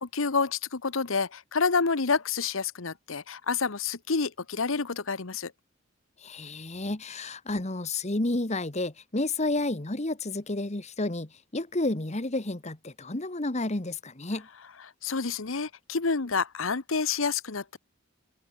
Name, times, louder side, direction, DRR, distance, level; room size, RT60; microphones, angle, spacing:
voice 1, 0.0-5.5 15.0-17.8, left 4 dB, 75° left, 1.1 m, -28 dB
voice 2, 6.2-14.5, left 2 dB, 35° left, 1.4 m, -31 dB
head